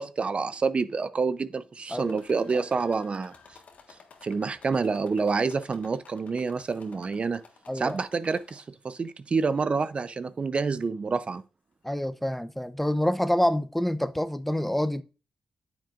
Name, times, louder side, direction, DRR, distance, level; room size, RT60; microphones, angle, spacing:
voice 1, 0.0-3.3 4.2-7.4 7.7-11.4, right 4 dB, 45° right, 0.6 m, -28 dB
sound 1, 1.9-8.9 9.4-10.0 10.8-10.9 11.3-11.4, left 5 dB, 70° left, 1.4 m, -54 dB
voice 2, 7.7-8.0 11.8-15.0, left 1 dB, 5° left, 0.7 m, -27 dB
8.9 x 7.6 x 2.5 m
supercardioid pair, 55°, 3 cm